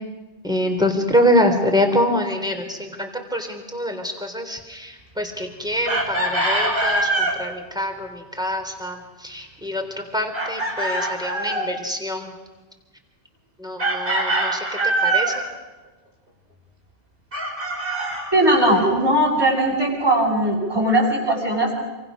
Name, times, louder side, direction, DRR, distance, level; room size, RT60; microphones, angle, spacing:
voice 1, 0.4-12.3 13.6-15.3, equal, 5° right, 4 dB, 3.5 m, -25 dB
Chicken rooster, 5.8-7.4 10.3-11.7 13.8-15.4 17.3-18.9, right 2 dB, 55° right, 5.0 m, -23 dB
voice 2, 18.3-21.7, right 1 dB, 20° right, 0 dB, 7.4 m, -19 dB
27.5 x 25.5 x 6.3 m, 1.2 s
omnidirectional pair, 1.1 m